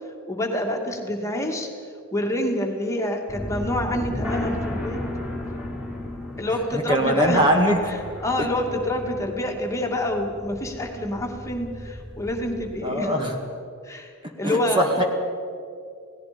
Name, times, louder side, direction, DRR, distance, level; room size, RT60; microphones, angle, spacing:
voice 1, 0.3-1.7 2.1-5.0 6.4-7.4 8.2-13.1 13.8-14.1 14.4-15.0, left 1 dB, 15° left, 1 dB, 2.3 m, -27 dB
sound 1, 3.3-12.8, left 1 dB, 5° right, 4.6 m, -34 dB
voice 2, 6.7-7.8 8.4-8.5 12.8-13.3 14.4-15.0, equal, 25° right, 2 dB, 1.8 m, -21 dB
29.0 x 17.5 x 5.2 m, 2.4 s
head